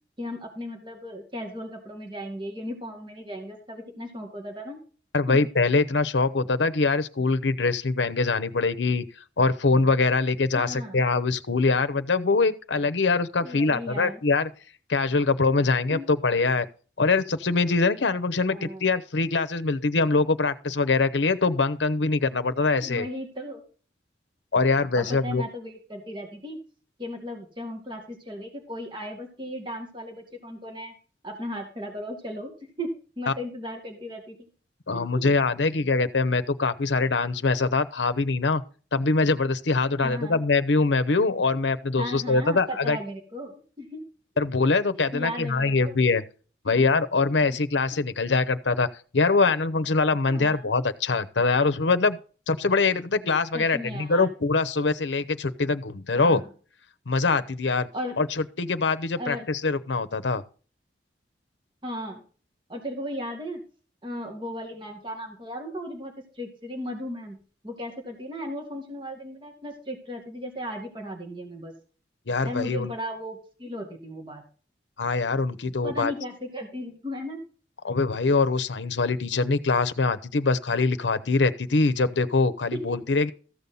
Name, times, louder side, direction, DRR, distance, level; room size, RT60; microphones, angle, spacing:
voice 1, 0.2-4.8 5.3-5.4 10.5-11.0 13.4-14.2 15.9-16.1 18.5-18.8 22.6-23.6 25.0-26.6 27.0-30.9 31.2-32.5 32.8-34.5 34.9-35.3 40.0-40.4 42.0-44.0 45.1-46.0 47.5-47.6 47.9-48.0 50.3-50.7 53.5-54.3 56.1-56.4 57.9-58.2 59.2-59.5 61.8-62.2 62.7-63.6 64.0-67.4 67.6-71.7 72.4-74.4 75.8-77.4 82.7-83.0, equal, 25° right, 2.1 m, -36 dB
voice 2, 5.1-9.0 9.4-14.5 14.9-16.7 17.0-23.1 24.5-25.4 33.3-33.4 34.9-38.6 38.9-43.0 44.4-46.2 46.6-48.9 49.1-52.2 52.5-56.4 57.1-57.9 58.2-60.4 72.3-72.9 75.0-76.1 77.8-83.3, left 3 dB, 90° left, 0.8 m, -23 dB
14.0 x 7.0 x 3.9 m
head